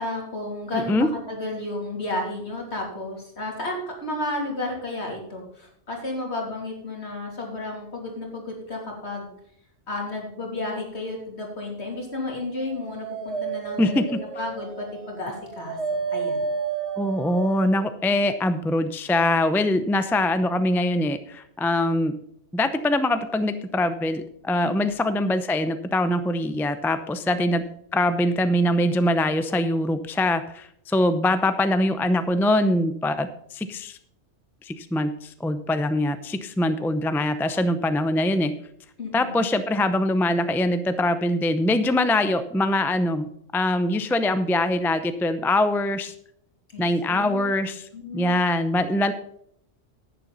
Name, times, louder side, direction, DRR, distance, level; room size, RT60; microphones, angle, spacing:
voice 1, 0.0-9.3 9.9-14.0 14.3-15.8 16.1-16.4 24.6-25.0 27.3-27.6 39.0-39.4 46.7-47.5 47.9-48.4, left 2 dB, 70° left, 0 dB, 3.3 m, -32 dB
voice 2, 0.7-1.1 13.8-14.2 17.0-22.2 22.5-27.6 27.9-34.0 34.6-38.5 39.1-46.1 46.8-47.9 48.1-49.1, left 1 dB, 5° left, 10 dB, 0.5 m, -23 dB
Dog, 12.3-17.9, right 5 dB, 75° right, 2.0 m, -31 dB
11.0 x 9.2 x 4.1 m, 0.72 s
omnidirectional pair, 1.2 m